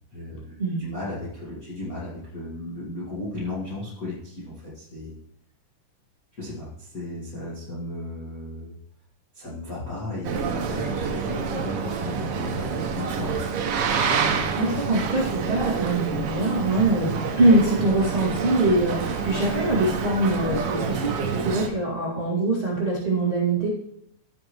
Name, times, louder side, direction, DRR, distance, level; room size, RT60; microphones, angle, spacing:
voice 1, 0.1-5.2 6.3-8.7 9.3-13.4, left 1 dB, 35° left, -7 dB, 1.6 m, -35 dB
Boat Water vehicle, 10.2-21.7, right 6 dB, 85° right, 1.3 m, -28 dB
voice 2, 14.1-23.7, right 2 dB, 20° right, -7 dB, 1.8 m, -23 dB
14.5 x 6.4 x 3.0 m, 0.74 s
omnidirectional pair, 3.8 m